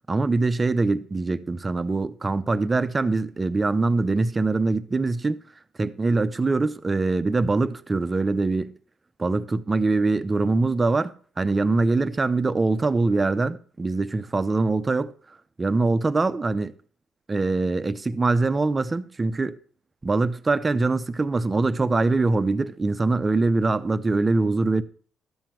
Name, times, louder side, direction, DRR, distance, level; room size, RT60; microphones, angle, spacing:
voice 1, 0.1-5.4 5.8-8.7 9.2-15.1 15.6-16.7 17.3-19.6 20.0-24.8, right 3 dB, 20° right, 0.7 m, -23 dB
12.5 x 7.5 x 4.5 m
cardioid pair, 130°, 0 cm